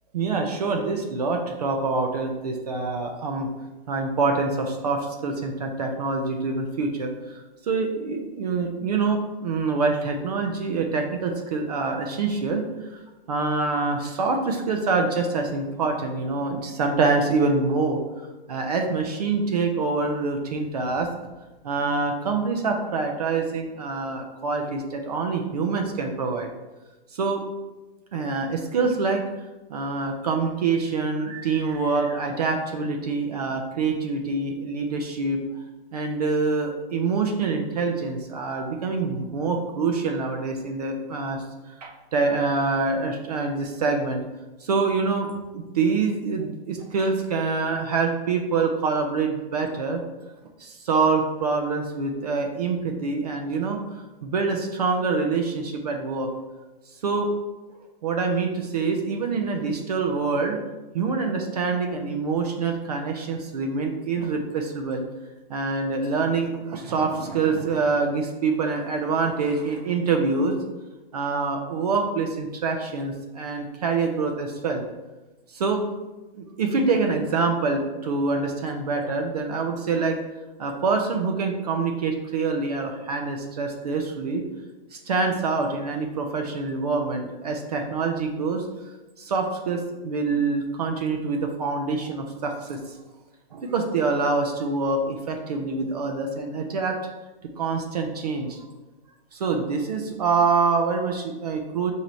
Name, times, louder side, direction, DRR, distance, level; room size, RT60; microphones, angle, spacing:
voice 1, 0.1-3.5 3.9-12.6 12.9-13.0 13.3-21.1 21.6-26.5 27.1-27.4 28.1-29.2 29.7-35.4 35.9-41.4 41.8-44.2 44.6-50.0 50.6-53.8 54.2-56.3 57.0-57.3 58.0-60.6 60.9-65.0 65.5-70.5 71.1-74.8 75.5-75.8 76.4-80.2 80.6-84.4 84.9-88.7 89.2-93.0 93.5-97.0 97.6-98.6 99.3-101.9, right 4 dB, 40° right, 3 dB, 0.4 m, -25 dB
4.5 x 2.7 x 4.2 m, 1.1 s
hypercardioid pair, 165°, 31 cm